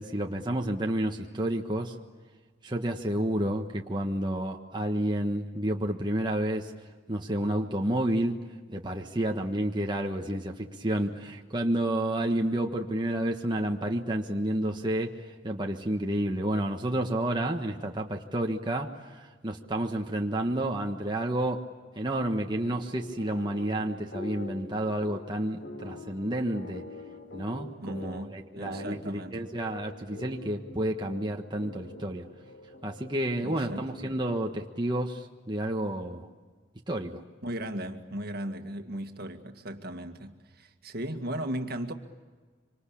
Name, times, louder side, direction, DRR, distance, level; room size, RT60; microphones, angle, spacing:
voice 1, 0.0-1.9 2.6-6.7 7.1-8.4 8.7-21.7 21.9-26.8 27.3-32.3 32.8-36.3 36.9-37.2, right 1 dB, 25° right, 1.4 m, -30 dB
sound 1, 22.6-34.4, left 2 dB, 65° left, 3.6 m, -45 dB
voice 2, 27.8-29.4 33.4-33.9 37.4-41.9, right 1 dB, 55° right, 2.0 m, -37 dB
26.5 x 25.5 x 8.6 m
head